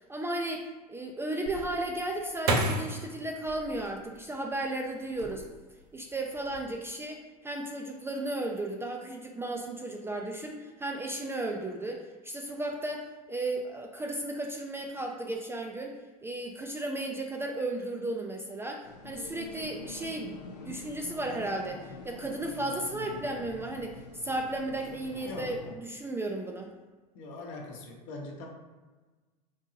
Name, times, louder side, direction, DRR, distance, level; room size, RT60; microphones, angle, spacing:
voice 1, 0.1-5.4 5.9-15.9 16.2-20.4 20.7-26.7, right 2 dB, 10° right, 1 dB, 0.3 m, -34 dB
sound 1, 1.5-4.5 5.1-5.8 6.1-6.6, right 2 dB, 60° right, 0.6 m, -32 dB
sound 2, 18.8-25.7, left 4 dB, 85° left, 0.5 m, -45 dB
voice 2, 25.2-25.6 27.1-28.5, left 2 dB, 55° left, 1 dB, 0.8 m, -41 dB
3.8 x 2.7 x 2.7 m, 1.3 s
hypercardioid pair, 85°, 21 cm